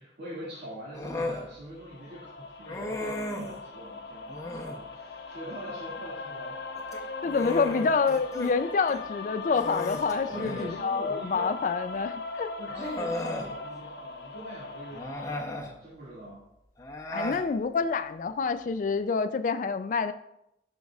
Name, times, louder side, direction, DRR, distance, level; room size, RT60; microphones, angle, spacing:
voice 1, 0.0-7.1 10.3-11.6 12.6-16.4, right 1 dB, 65° right, -8 dB, 2.0 m, -43 dB
Human voice, 0.9-1.5 2.7-3.6 4.3-4.8 6.8-8.5 8.9-9.0 9.5-10.7 11.9-12.0 12.7-13.5 14.9-15.7 16.8-17.4, left 1 dB, 20° left, 0.7 m, -35 dB
sound 1, 1.8-15.4, left 4 dB, 70° left, 0.7 m, -40 dB
voice 2, 7.2-12.5 17.1-20.1, left 5 dB, 45° left, 11 dB, 0.3 m, -27 dB
11.0 x 5.3 x 2.4 m, 0.83 s
head